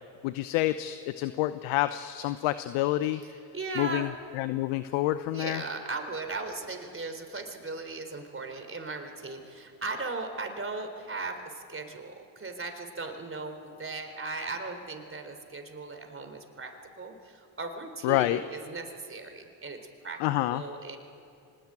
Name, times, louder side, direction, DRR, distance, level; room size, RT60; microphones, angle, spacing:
voice 1, 0.2-3.2 3.8-4.1 4.3-5.6 18.0-18.4 20.2-20.6, left 15 dB, 75° left, 13 dB, 0.9 m, -28 dB
voice 2, 3.1-4.1 5.3-20.2 20.5-21.0, right 3 dB, 25° right, 6 dB, 4.0 m, -38 dB
25.0 x 19.5 x 9.0 m, 2.5 s
supercardioid pair, 70°, 50 cm